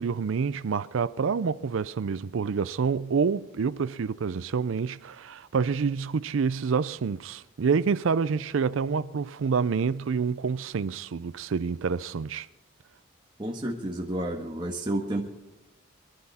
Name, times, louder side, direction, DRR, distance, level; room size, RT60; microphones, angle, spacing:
voice 1, 0.0-12.5, right 5 dB, 80° right, 0.4 m, -27 dB
voice 2, 13.4-15.3, right 1 dB, 25° right, 1.4 m, -30 dB
23.5 x 12.0 x 4.2 m
head